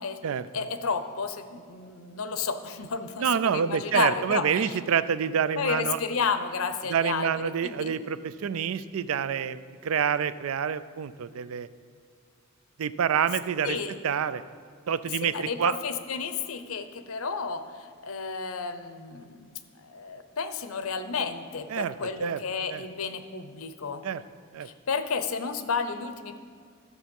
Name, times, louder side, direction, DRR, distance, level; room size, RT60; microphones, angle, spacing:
voice 1, 0.5-4.8 5.6-7.9 13.6-14.0 15.2-24.0 24.6-26.4, left 5 dB, 75° left, 10 dB, 0.7 m, -32 dB
voice 2, 3.2-6.0 6.9-11.7 12.8-13.8 14.0-14.4 14.9-15.8 21.7-21.9 22.2-22.4 22.7-22.8 24.0-24.2 24.5-24.7, right 7 dB, 70° right, 15 dB, 0.4 m, -27 dB
12.5 x 7.0 x 5.3 m, 2.1 s
head